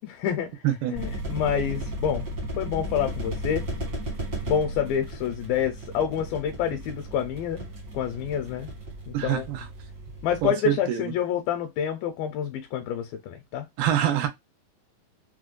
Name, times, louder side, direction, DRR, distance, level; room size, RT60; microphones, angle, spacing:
voice 1, 0.0-0.6 0.9-2.3 2.6-3.7 4.4-7.7 7.9-8.7 9.1-9.4 10.2-13.7, left 8 dB, 80° left, 2.3 m, -28 dB
voice 2, 0.6-1.0 9.1-9.7 10.4-11.1 13.8-14.3, right 11 dB, 90° right, 2.8 m, -25 dB
sound 1, 0.9-10.5, right 1 dB, 70° right, 1.0 m, -35 dB
6.2 x 2.2 x 2.4 m
omnidirectional pair, 4.3 m